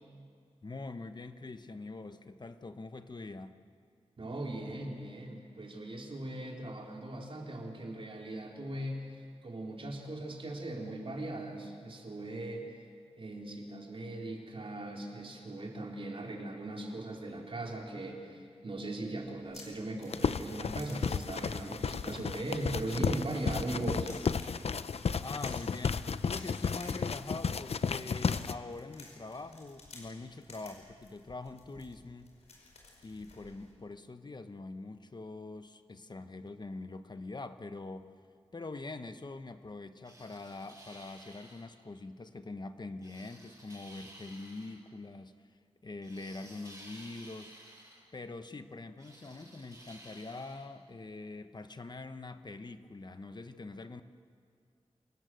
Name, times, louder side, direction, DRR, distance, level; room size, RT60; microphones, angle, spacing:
voice 1, 0.6-3.6 25.2-32.3 33.0-38.1 38.5-45.3 45.8-47.7 48.1-54.0, left 3 dB, 40° left, 9 dB, 1.1 m, -44 dB
voice 2, 4.2-9.0 9.4-12.7 13.2-24.1, right 1 dB, 55° right, 0 dB, 3.9 m, -39 dB
sound 1, 19.2-33.7, left 3 dB, 85° left, 5.2 m, -55 dB
sound 2, 20.1-28.5, left 5 dB, 65° left, 0.6 m, -33 dB
sound 3, 40.0-41.7 43.0-44.8 46.0-48.0 49.0-50.6, right 1 dB, 30° right, 7.6 m, -54 dB
27.0 x 19.0 x 7.8 m, 2.2 s
wide cardioid pair, 90°, 11 cm